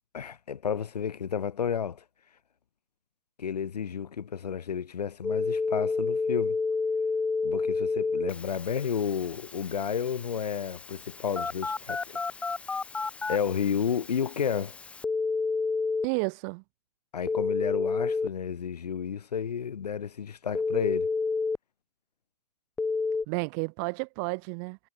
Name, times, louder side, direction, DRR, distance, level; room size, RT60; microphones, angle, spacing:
voice 1, 0.1-2.0 3.4-6.6 7.4-12.2 13.3-14.8 17.1-21.1, left 7 dB, 80° left, 5.4 m, -31 dB
Telephone, 5.2-16.0 17.3-18.3 20.5-21.6 22.8-23.2, left 4 dB, 5° left, 2.8 m, -30 dB
voice 2, 16.0-16.6 23.3-24.8, right 39 dB, 30° right, 5.8 m, -31 dB
hypercardioid pair, 160°, 20 cm